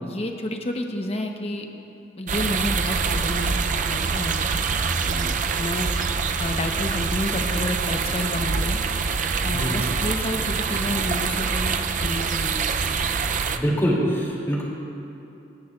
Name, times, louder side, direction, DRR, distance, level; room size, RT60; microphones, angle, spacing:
voice 1, 0.0-1.7 2.2-3.6 3.8-4.6 5.0-5.9 6.4-8.8 9.4-12.6, left 1 dB, 35° left, 3 dB, 0.9 m, -30 dB
sound 1, 2.3-13.6, right 5 dB, 45° right, 0.4 m, -25 dB
voice 2, 13.5-14.6, equal, 15° left, -5 dB, 2.6 m, -23 dB
27.0 x 10.5 x 2.4 m, 2.8 s
head